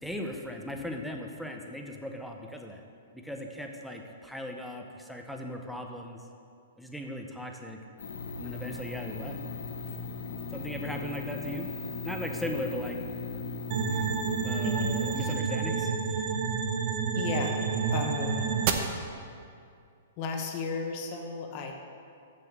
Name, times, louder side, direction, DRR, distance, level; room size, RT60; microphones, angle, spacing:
voice 1, 0.0-2.8 3.1-6.2 6.8-7.8 8.4-9.4 10.5-11.7 12.0-13.0 13.9-14.1 14.4-15.9, left 1 dB, ahead, 2 dB, 0.7 m, -38 dB
sound 1, 8.0-15.4, left 4 dB, 85° left, 1.3 m, -38 dB
sound 2, 13.7-18.7, right 6 dB, 40° right, 0.7 m, -29 dB
voice 2, 17.1-18.5 20.2-21.7, left 4 dB, 35° left, 2 dB, 1.0 m, -34 dB
6.8 x 6.6 x 7.2 m, 2.3 s
hypercardioid pair, 160°, 0 cm